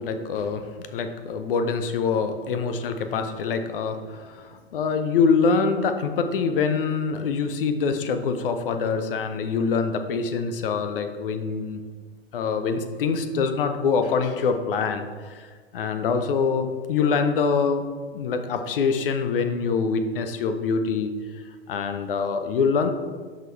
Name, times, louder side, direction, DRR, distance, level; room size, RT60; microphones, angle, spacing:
voice 1, 0.0-11.8 12.3-17.8 18.1-21.1 21.7-22.9, left 5 dB, 55° left, 8 dB, 0.7 m, -25 dB
11.0 x 4.0 x 3.2 m, 1.5 s
figure-of-eight pair, 100°, 33 cm